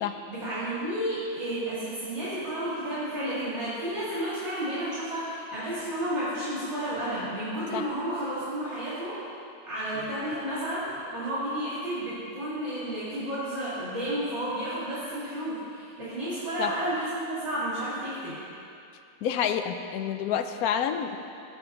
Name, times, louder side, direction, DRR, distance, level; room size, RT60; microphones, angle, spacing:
voice 1, 0.3-9.2 9.7-18.4, right 1 dB, 50° right, -11 dB, 3.0 m, -32 dB
voice 2, 19.2-21.2, left 8 dB, 80° left, 8 dB, 1.1 m, -29 dB
17.5 x 7.0 x 3.9 m, 2.6 s
omnidirectional pair, 1.5 m